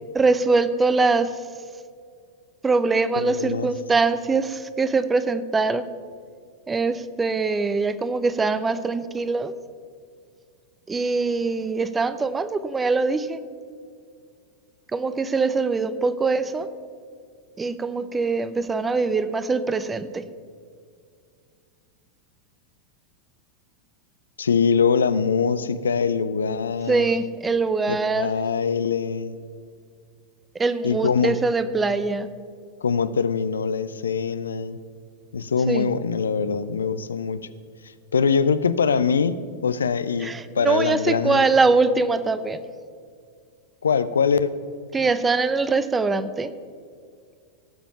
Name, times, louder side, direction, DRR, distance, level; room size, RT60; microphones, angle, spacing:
voice 1, 0.1-1.3 2.6-5.9 6.7-9.5 10.9-13.4 14.9-16.7 17.6-20.2 26.9-28.3 30.5-32.3 35.7-35.9 40.2-42.6 44.9-46.5, right 3 dB, 15° right, 13 dB, 0.6 m, -23 dB
voice 2, 3.2-3.7 24.4-27.1 27.9-29.4 30.8-31.3 32.8-34.8 35.3-37.5 38.1-41.5 43.8-44.5, left 6 dB, 70° left, 14 dB, 0.5 m, -23 dB
17.0 x 7.0 x 5.6 m, 2.2 s
figure-of-eight pair, 90°, 0 cm